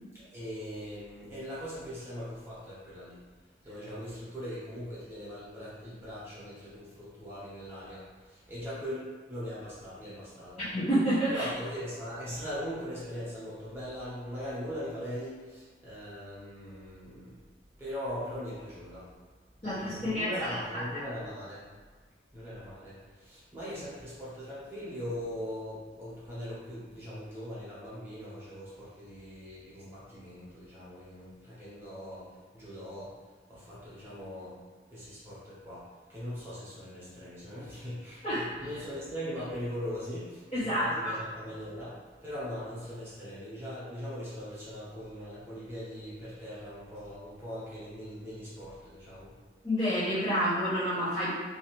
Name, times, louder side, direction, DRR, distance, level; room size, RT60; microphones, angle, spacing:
voice 1, 0.1-3.2 3.6-10.6 11.3-17.4 17.8-19.1 19.6-21.6 22.3-33.1 33.5-34.5 34.9-49.3, equal, 15° right, -10 dB, 1.0 m, -40 dB
voice 2, 10.6-11.5 19.6-20.8 38.2-38.5 40.5-41.2 49.6-51.3, equal, 35° left, -15 dB, 1.0 m, -29 dB
2.9 x 2.7 x 2.9 m, 1.5 s
head